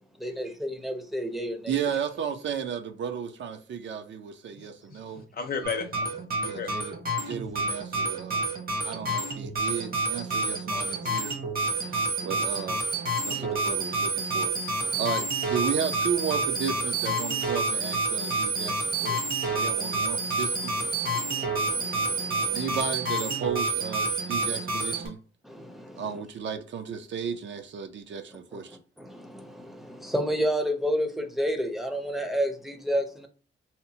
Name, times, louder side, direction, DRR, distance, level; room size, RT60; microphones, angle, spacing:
voice 1, 0.2-1.7 10.3-10.4 11.6-12.1 13.1-13.5 14.8-15.0 19.0-19.8 20.8-22.8 24.4-24.5 25.4-26.2 28.5-28.6 29.0-33.3, equal, ahead, 0.5 m, -32 dB
voice 2, 1.7-5.2 6.4-6.9 7.2-8.4 8.8-11.3 11.8-12.8 13.3-14.5 14.9-20.7 22.5-25.2 26.0-28.8, right 7 dB, 60° right, 0.4 m, -34 dB
voice 3, 4.6-6.7 11.9-12.0 13.4-13.5, left 5 dB, 45° left, 0.5 m, -36 dB
sound 1, 5.6-25.1, right 2 dB, 45° right, 0.9 m, -29 dB
2.8 x 2.0 x 2.7 m
cardioid pair, 115°, 21 cm